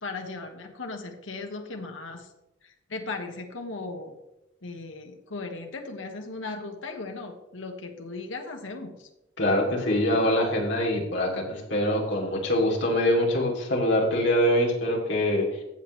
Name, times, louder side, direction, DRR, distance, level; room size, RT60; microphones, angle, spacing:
voice 1, 0.0-2.3 2.6-4.2 4.6-9.1, left 3 dB, 85° left, 4 dB, 1.2 m, -37 dB
voice 2, 9.4-15.5, left 1 dB, 65° left, -2 dB, 2.8 m, -24 dB
14.5 x 7.7 x 3.2 m, 0.91 s
head